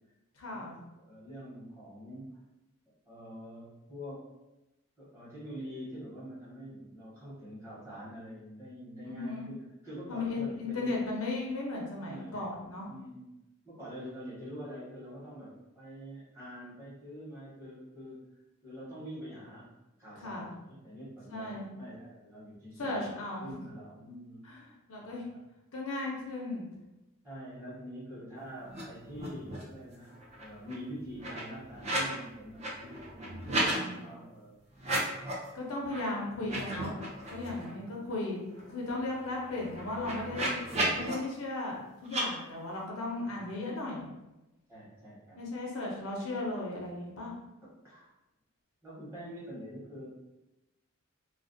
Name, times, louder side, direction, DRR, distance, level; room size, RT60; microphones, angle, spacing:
voice 1, 0.4-0.8 9.0-9.5 10.1-12.9 20.2-20.5 21.3-21.7 22.8-23.5 24.4-25.3 25.7-26.7 33.5-34.0 35.5-37.0 37.3-38.4 38.7-40.6 40.9-44.1 45.4-47.3, left 2 dB, 80° left, -2 dB, 0.6 m, -36 dB
voice 2, 1.0-2.4 3.1-4.2 5.0-9.6 9.8-10.9 12.0-12.4 12.8-13.3 13.6-18.3 18.6-19.7 20.0-23.0 23.4-24.4 24.9-25.4 27.2-34.6 37.5-38.0 43.2-43.4 44.7-45.4 47.8-48.1 48.8-50.1, equal, 15° right, -9 dB, 0.9 m, -45 dB
sound 1, 28.7-28.8 29.1-29.7 30.1-32.2 32.5-33.8 34.7-35.5 35.9-36.0 36.4-37.7 38.1-38.2 38.5-41.1 42.0-42.2, right 1 dB, 30° right, 0.4 m, -35 dB
2.3 x 2.0 x 2.6 m, 0.98 s
head